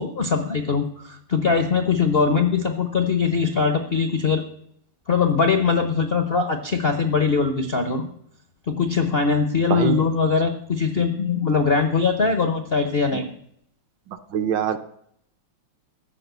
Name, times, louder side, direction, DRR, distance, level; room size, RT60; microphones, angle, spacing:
voice 1, 0.0-4.4 5.1-8.1 8.7-13.3, left 5 dB, 55° left, 7 dB, 0.6 m, -21 dB
voice 2, 9.7-10.0 13.1-13.2 14.3-14.8, right 8 dB, 65° right, 8 dB, 1.3 m, -23 dB
14.0 x 6.1 x 8.1 m, 0.70 s
omnidirectional pair, 2.4 m